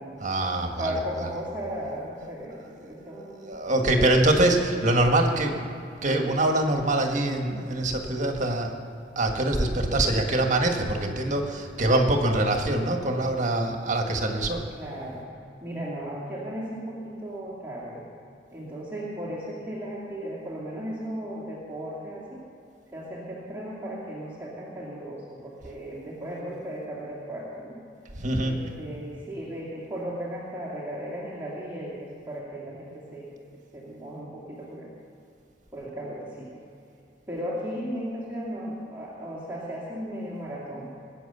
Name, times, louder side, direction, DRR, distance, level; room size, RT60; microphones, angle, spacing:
voice 1, 0.2-0.9 2.8-2.9 3.4-5.7 6.0-8.8 9.1-14.6 28.2-28.6, right 1 dB, 45° right, 3 dB, 1.7 m, -24 dB
voice 2, 0.8-4.2 14.7-15.3 15.6-18.1 18.5-22.4 22.9-27.8 28.4-33.3 33.7-34.9 35.7-36.6 37.3-40.9, equal, 10° right, -8 dB, 2.5 m, -36 dB
21.0 x 9.1 x 6.9 m, 2.6 s
head